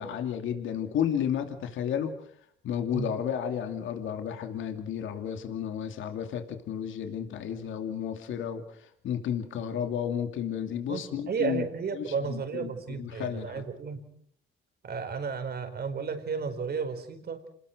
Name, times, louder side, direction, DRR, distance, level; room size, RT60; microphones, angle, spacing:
voice 1, 0.0-2.1 2.6-11.7 12.0-13.6, left 8 dB, 80° left, 6 dB, 2.7 m, -32 dB
voice 2, 10.9-14.1 14.8-17.4, right 5 dB, 55° right, 8 dB, 4.6 m, -33 dB
28.0 x 20.0 x 6.3 m, 0.65 s
cardioid pair, 90°, 20 cm